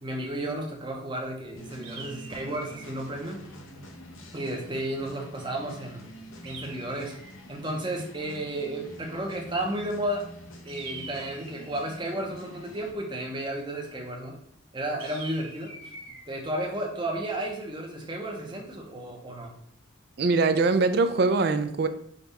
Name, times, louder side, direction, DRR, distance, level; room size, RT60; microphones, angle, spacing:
voice 1, 0.0-3.4 4.3-6.0 6.4-7.1 7.5-10.3 10.6-14.4 14.7-15.9 16.3-19.5, right 1 dB, 20° right, 0 dB, 0.8 m, -33 dB
sound 1, 1.5-12.9, equal, 80° left, 0.8 m, -46 dB
sound 2, 1.8-3.0 6.4-7.5 10.7-11.9 15.0-16.2, right 3 dB, 80° right, 1.4 m, -44 dB
voice 2, 20.2-21.9, right 3 dB, 50° right, 10 dB, 0.3 m, -22 dB
5.2 x 2.3 x 4.1 m, 0.66 s
head